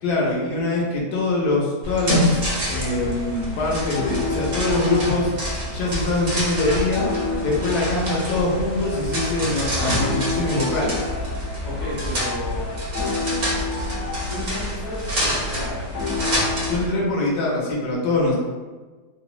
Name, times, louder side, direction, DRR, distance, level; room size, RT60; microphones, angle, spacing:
voice 1, 0.0-5.3 5.7-7.1 7.4-11.1 16.7-18.4, left 2 dB, 80° left, -4 dB, 1.2 m, -23 dB
sound 1, 1.8-16.9, equal, 65° right, 0.4 m, -27 dB
sound 2, 2.3-16.7, left 3 dB, 55° left, 0.9 m, -32 dB
voice 2, 11.6-12.7 14.3-16.5, left 1 dB, 25° left, -8 dB, 0.4 m, -33 dB
3.1 x 2.0 x 2.4 m, 1.4 s
omnidirectional pair, 1.7 m